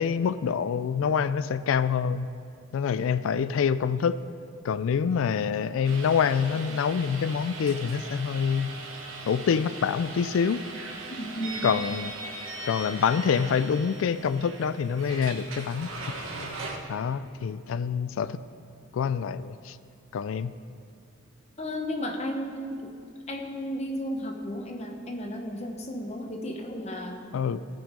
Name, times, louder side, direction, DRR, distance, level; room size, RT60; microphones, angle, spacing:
voice 1, 0.0-2.3 2.7-4.2 4.6-8.7 9.3-10.6 11.6-12.1 12.7-15.9 16.9-18.4 18.9-19.8 20.1-20.5 27.3-27.6, left 6 dB, 75° left, 13 dB, 0.3 m, -26 dB
sound 1, 5.8-16.8, right 2 dB, 75° right, 1.2 m, -39 dB
voice 2, 11.1-11.6 21.6-22.9 23.3-27.3, equal, 30° left, 2 dB, 0.9 m, -34 dB
16.5 x 5.5 x 5.1 m, 2.4 s
head